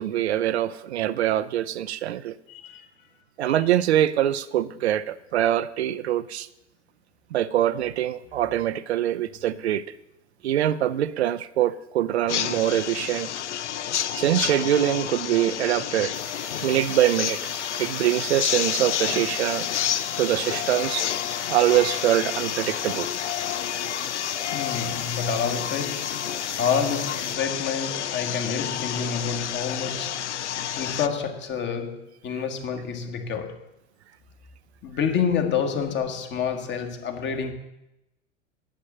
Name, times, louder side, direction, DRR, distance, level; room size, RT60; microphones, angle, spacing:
voice 1, 0.0-2.4 3.4-6.5 7.3-9.8 10.4-13.3 14.1-16.1 16.6-17.4 17.8-19.7 20.2-21.1 21.5-23.1, right 12 dB, 60° right, 0.7 m, -24 dB
voice 2, 2.5-2.8 3.5-3.6 24.5-26.2 26.6-30.2 30.7-33.7 34.8-37.5, left 6 dB, 30° left, 1.6 m, -28 dB
sound 1, 12.3-31.1, left 11 dB, 70° left, 0.6 m, -30 dB
sound 2, 16.1-27.4, right 2 dB, 5° right, 0.7 m, -43 dB
10.0 x 7.5 x 7.3 m
figure-of-eight pair, 85°, 36 cm